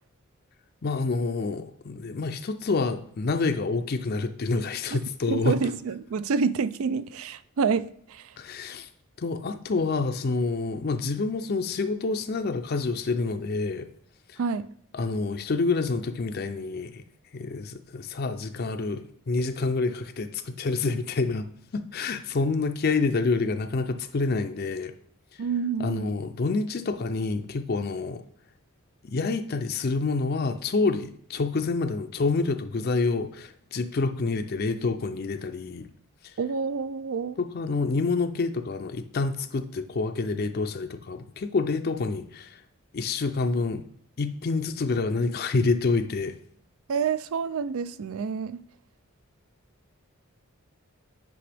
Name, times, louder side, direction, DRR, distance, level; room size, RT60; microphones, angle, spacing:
voice 1, 0.8-5.6 8.4-8.9 9.2-13.9 14.3-14.4 14.9-17.0 17.3-21.5 21.7-24.9 25.8-28.2 29.0-35.9 37.4-42.6 42.9-43.8 44.2-46.3, left 3 dB, 45° left, 0.4 m, -27 dB
voice 2, 5.3-8.3 14.4-14.7 25.4-26.1 36.4-37.4 46.9-48.6, right 5 dB, 70° right, 0.4 m, -28 dB
8.4 x 5.3 x 3.4 m
head